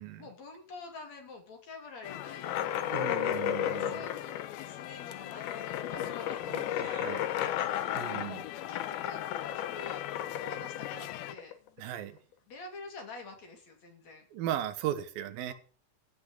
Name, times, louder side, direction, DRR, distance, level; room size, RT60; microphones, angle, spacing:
voice 1, 0.2-3.0 3.6-7.9 8.5-10.0 10.4-11.5 12.5-14.3, left 3 dB, 50° left, 3.8 m, -48 dB
sound 1, 2.0-11.4, left 14 dB, 90° left, 2.7 m, -41 dB
sound 2, 2.4-11.8, left 11 dB, 70° left, 2.3 m, -34 dB
voice 2, 2.8-4.1 6.5-7.3 8.0-8.5 11.8-12.2 14.3-15.5, right 11 dB, 80° right, 2.9 m, -37 dB
15.5 x 6.0 x 8.2 m
omnidirectional pair, 4.2 m